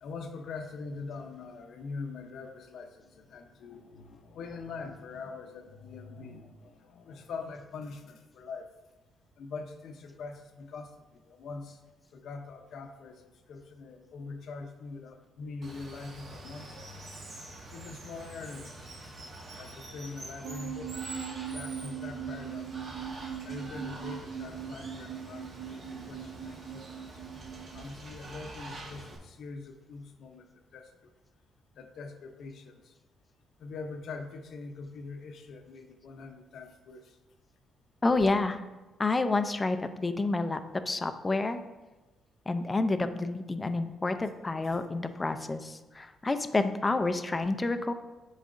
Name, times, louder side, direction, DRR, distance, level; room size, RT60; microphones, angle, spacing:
voice 1, 0.0-8.7 9.4-11.8 12.1-16.8 17.7-19.1 19.6-20.9 21.5-22.8 23.4-26.9 27.1-27.2 27.7-30.5 30.7-31.1 31.7-32.9 33.6-37.2 44.6-44.8 46.6-46.7, left 4 dB, 70° left, 6 dB, 0.6 m, -43 dB
Water, 15.6-29.2, right 2 dB, 50° right, 1.4 m, -45 dB
sound 1, 20.4-27.8, right 8 dB, 80° right, 0.6 m, -40 dB
voice 2, 38.0-38.6 39.0-40.6 40.9-41.6 42.5-47.9, left 3 dB, 20° left, 9 dB, 0.4 m, -29 dB
10.0 x 4.0 x 2.5 m, 1.1 s
cardioid pair, 120°, 0 cm